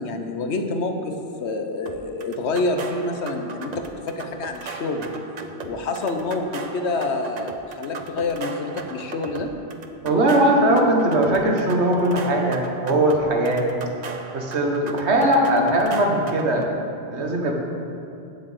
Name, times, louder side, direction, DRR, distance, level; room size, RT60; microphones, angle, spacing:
voice 1, 0.0-5.1 5.6-9.5, left 2 dB, 80° left, 6 dB, 1.2 m, -27 dB
sound 1, 1.9-16.7, right 4 dB, 45° right, 0.7 m, -37 dB
voice 2, 10.0-13.7 14.3-16.7 17.1-17.5, right 1 dB, 85° right, 1 dB, 1.6 m, -20 dB
7.7 x 7.4 x 7.9 m, 2.7 s
omnidirectional pair, 1.1 m